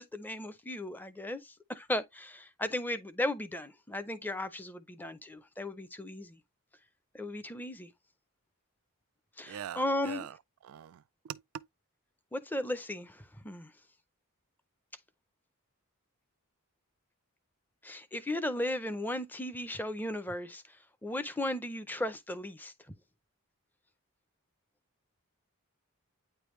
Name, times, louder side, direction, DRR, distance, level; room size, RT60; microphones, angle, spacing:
voice 1, 0.0-6.4 7.1-7.9 9.4-10.3 12.3-13.7 17.8-20.8 21.0-22.7, left 1 dB, 10° left, 0.5 m, -36 dB
voice 2, 9.5-10.3 10.7-11.0 11.3-11.4, right 10 dB, 70° right, 0.3 m, -41 dB
9.2 x 3.4 x 3.1 m
head